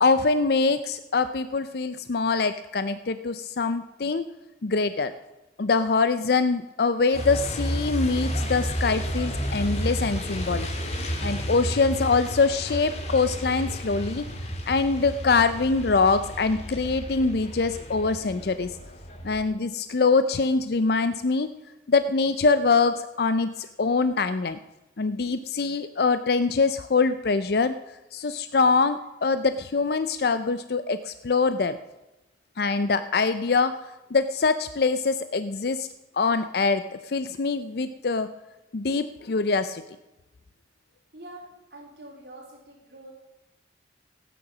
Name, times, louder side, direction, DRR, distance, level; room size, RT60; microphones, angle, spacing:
voice 1, 0.0-4.3 4.6-5.1 5.6-10.7 11.2-14.3 14.7-18.7 19.2-21.5 21.9-24.6 25.0-27.7 28.1-31.8 32.6-33.8 34.1-35.9 36.2-38.3 38.7-39.8, left 4 dB, 60° left, 11 dB, 0.5 m, -24 dB
Truck, 7.1-19.4, equal, 40° left, 2.0 m, -32 dB
voice 2, 41.1-43.1, right 1 dB, 60° right, -2 dB, 3.3 m, -45 dB
16.5 x 9.2 x 6.0 m, 1.0 s
head